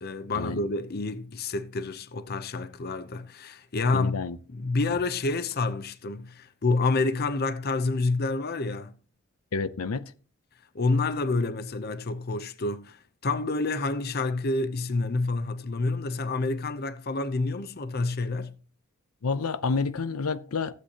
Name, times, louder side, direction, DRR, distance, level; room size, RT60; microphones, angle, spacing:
voice 1, 0.0-8.9 10.7-18.5, left 3 dB, 45° left, 0.7 m, -28 dB
voice 2, 3.9-4.4 9.5-10.0 19.2-20.7, left 4 dB, 85° left, 0.6 m, -29 dB
15.0 x 8.3 x 2.9 m
head